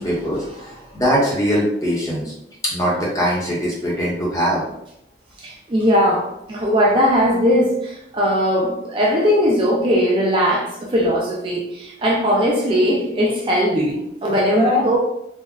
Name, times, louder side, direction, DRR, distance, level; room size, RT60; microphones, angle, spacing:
voice 1, 0.0-2.3 2.6-4.6, equal, 20° left, -5 dB, 0.8 m, -21 dB
voice 2, 5.4-15.0, equal, 30° right, -3 dB, 0.3 m, -19 dB
3.5 x 2.1 x 2.3 m, 0.80 s
head